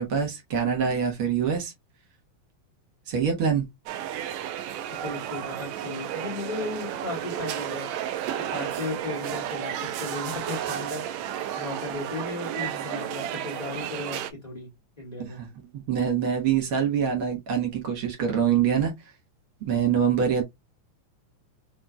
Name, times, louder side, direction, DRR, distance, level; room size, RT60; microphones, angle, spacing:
voice 1, 0.0-1.7 3.1-3.7 15.2-15.5 15.7-18.9 19.7-20.4, right 7 dB, 55° right, 1.7 m, -25 dB
sound 1, 3.9-14.3, right 10 dB, 80° right, 1.8 m, -32 dB
voice 2, 4.9-7.9 8.5-11.3 11.6-14.7 15.0-15.4, left 3 dB, 15° left, 1.7 m, -35 dB
6.4 x 3.2 x 2.2 m
omnidirectional pair, 3.7 m